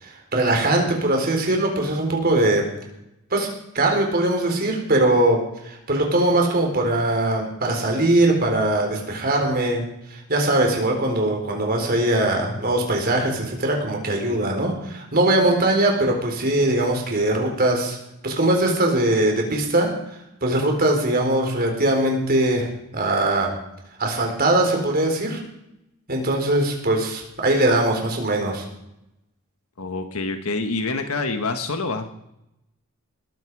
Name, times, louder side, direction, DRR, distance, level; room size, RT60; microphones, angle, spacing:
voice 1, 0.0-2.6 3.3-3.5 3.7-5.4 5.6-9.8 10.1-18.0 18.2-19.9 20.4-22.7 22.9-23.5 24.0-25.4 26.1-28.7, right 1 dB, 45° right, 2 dB, 4.1 m, -21 dB
voice 2, 29.8-32.1, left 3 dB, 80° left, 7 dB, 1.4 m, -26 dB
20.0 x 14.5 x 4.8 m, 0.84 s
head